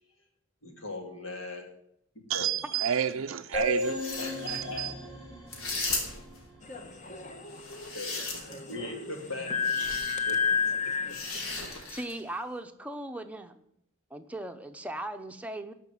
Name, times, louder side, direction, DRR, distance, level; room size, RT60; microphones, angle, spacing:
voice 1, 0.6-1.7 2.2-2.5 4.2-4.9 7.9-9.5 10.3-10.4 10.8-10.9, left 2 dB, 70° left, 2.3 m, -39 dB
voice 2, 2.3-4.0 4.4-4.9, right 8 dB, 80° right, 0.5 m, -30 dB
sound 1, 3.5-7.1, left 1 dB, 20° left, 4.2 m, -36 dB
sound 2, 3.9-4.6 5.5-6.4 7.5-8.7 9.6-10.2 11.1-12.2, left 3 dB, 85° left, 3.0 m, -36 dB
sound 3, 6.6-11.7, left 6 dB, 35° left, 1.3 m, -32 dB
voice 3, 11.9-13.5 14.1-15.7, right 1 dB, 5° right, 0.8 m, -38 dB
13.5 x 5.8 x 9.3 m
head